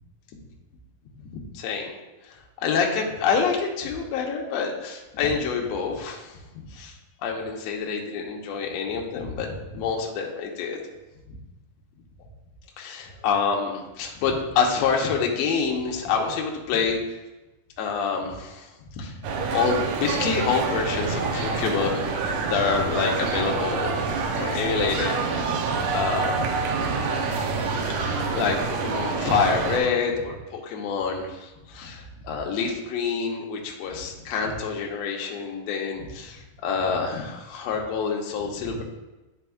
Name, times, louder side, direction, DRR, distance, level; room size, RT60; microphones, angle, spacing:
voice 1, 1.2-1.9 2.2-6.9 7.2-10.8 12.8-17.0 17.8-18.7 19.0-23.9 24.4-25.6 25.9-26.5 26.8-26.9 28.0-38.8, left 5 dB, 85° left, 0 dB, 1.5 m, -27 dB
sound 1, 19.2-29.8, right 4 dB, 75° right, 2.0 m, -27 dB
10.5 x 4.2 x 2.3 m, 1.0 s
omnidirectional pair, 4.1 m